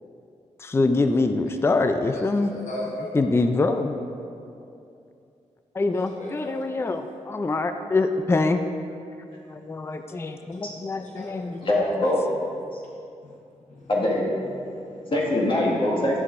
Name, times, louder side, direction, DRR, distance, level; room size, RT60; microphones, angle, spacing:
voice 1, 0.6-2.5 3.1-4.0 5.7-8.6 9.5-11.6, left 3 dB, 20° left, 8 dB, 0.4 m, -24 dB
voice 2, 2.1-3.2 5.9-6.6 10.1-10.2 10.9-11.8 13.2-13.4 13.7-13.9 14.7-15.1, left 1 dB, 75° left, -4 dB, 1.2 m, -38 dB
voice 3, 11.6-12.2 12.7-12.8 13.9-14.3 15.1-16.2, left 1 dB, 45° left, -4 dB, 1.8 m, -23 dB
11.0 x 6.8 x 2.5 m, 2.5 s
cardioid pair, 90°, 13 cm